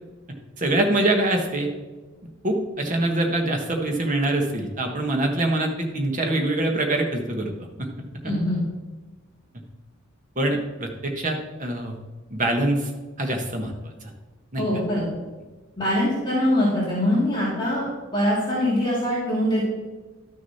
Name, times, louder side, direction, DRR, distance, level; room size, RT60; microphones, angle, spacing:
voice 1, 0.6-1.7 2.4-7.5 7.8-8.3 10.4-11.9 12.3-12.9 13.2-13.7 14.5-14.6, right 1 dB, 40° right, 2 dB, 1.3 m, -24 dB
voice 2, 8.2-8.6 14.6-15.0 15.8-17.9 18.1-19.6, left 1 dB, 20° left, -8 dB, 2.5 m, -23 dB
11.5 x 6.5 x 4.2 m, 1.3 s
head